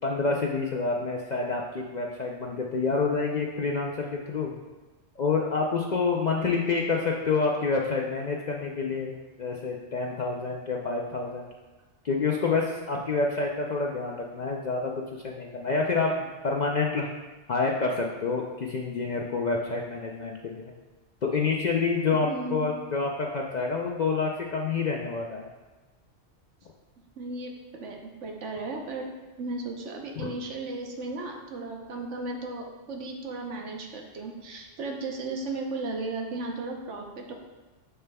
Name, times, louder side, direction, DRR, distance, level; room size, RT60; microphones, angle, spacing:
voice 1, 0.0-4.5 5.2-9.1 9.4-11.5 12.0-17.1 17.5-20.7 21.2-25.5 30.2-30.3, left 4 dB, 55° left, -1 dB, 0.5 m, -28 dB
voice 2, 22.1-22.8 27.2-29.1 29.4-37.3, right 2 dB, 75° right, 1 dB, 1.2 m, -35 dB
7.0 x 6.6 x 2.3 m, 1.2 s
omnidirectional pair, 1.2 m